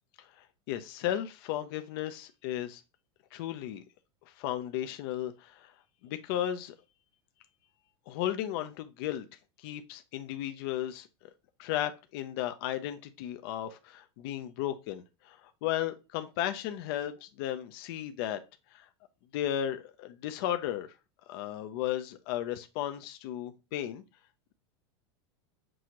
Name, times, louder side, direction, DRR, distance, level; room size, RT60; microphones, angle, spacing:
voice 1, 0.2-2.8 3.3-3.8 4.3-5.7 6.0-6.7 8.1-9.3 9.6-11.1 11.6-18.4 18.7-18.9 19.3-20.9 21.3-24.0, left 11 dB, 65° left, 9 dB, 0.5 m, -35 dB
6.1 x 2.5 x 2.9 m, 0.27 s
supercardioid pair, 120°, 13 cm